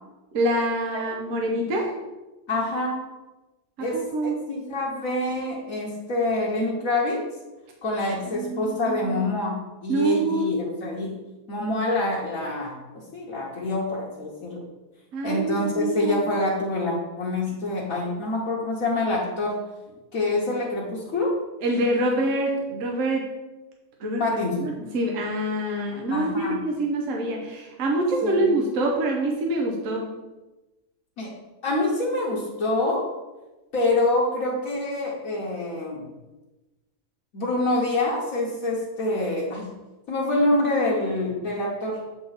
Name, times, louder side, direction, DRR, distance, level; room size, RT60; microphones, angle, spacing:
voice 1, 0.3-1.9 3.8-4.3 8.3-9.2 9.9-10.6 15.1-16.3 21.6-23.3 24.0-30.1, right 1 dB, 65° right, 0 dB, 1.2 m, -26 dB
voice 2, 2.5-3.0 3.8-7.2 7.8-11.2 11.5-14.6 15.2-19.6 20.1-21.3 24.2-24.7 26.1-26.6 28.2-28.5 31.2-31.3 31.6-33.1 33.7-36.1 37.3-39.7 40.1-42.0, left 2 dB, 70° left, -5 dB, 1.5 m, -26 dB
7.0 x 4.4 x 4.0 m, 1.1 s
omnidirectional pair, 1.5 m